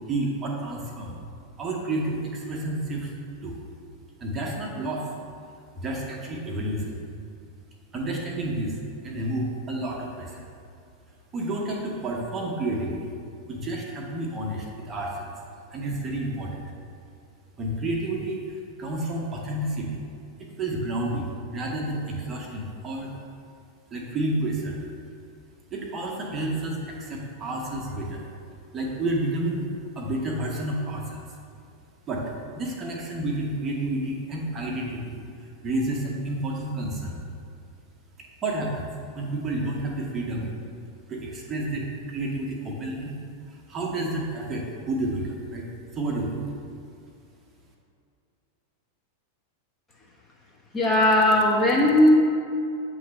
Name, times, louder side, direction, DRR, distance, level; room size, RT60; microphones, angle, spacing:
voice 1, 0.1-1.2 1.6-3.1 3.4-3.6 4.2-5.1 5.8-7.0 7.9-8.8 9.0-10.5 11.3-13.1 13.5-15.3 15.7-16.7 17.6-20.0 20.4-23.1 23.9-24.8 25.7-28.2 28.7-29.7 29.9-31.3 32.1-35.2 35.6-37.2 38.4-38.9 39.1-40.5 41.1-43.2 43.5-45.7 45.9-46.4, right 1 dB, 25° right, -1 dB, 1.0 m, -30 dB
voice 2, 50.7-52.1, left 1 dB, 15° left, -3 dB, 0.9 m, -18 dB
7.7 x 3.2 x 5.2 m, 2.5 s
figure-of-eight pair, 90°, 0 cm